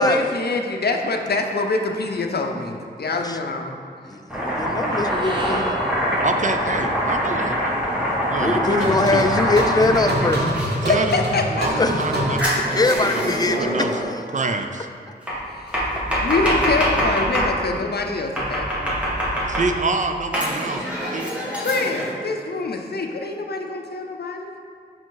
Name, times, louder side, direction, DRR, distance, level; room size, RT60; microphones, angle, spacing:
voice 1, 0.0-3.7 10.8-11.8 12.7-13.1 15.5-15.9 16.2-18.7 21.6-24.5, left 3 dB, 65° left, 3 dB, 0.6 m, -25 dB
voice 2, 3.0-3.4 4.1-5.8 7.5-7.6 8.4-10.5 11.7-12.1 12.7-13.8 14.0-14.1, left 2 dB, 20° left, 7 dB, 0.4 m, -22 dB
Domestic sounds home sounds, 4.3-10.7 12.4-13.5 15.3-17.5 18.4-19.9 20.3-22.1, equal, 5° right, 1.4 m, -24 dB
sound 1, 4.8-9.1, right 1 dB, 25° right, 0.8 m, -35 dB
voice 3, 6.2-7.9 8.3-9.2 10.8-13.3 13.6-14.0 14.3-14.9 19.5-21.3, right 3 dB, 45° right, 6 dB, 0.4 m, -27 dB
sound 2, 8.8-14.0, equal, 70° right, 1.1 m, -25 dB
6.0 x 5.0 x 3.8 m, 2.5 s
wide cardioid pair, 105°, 18 cm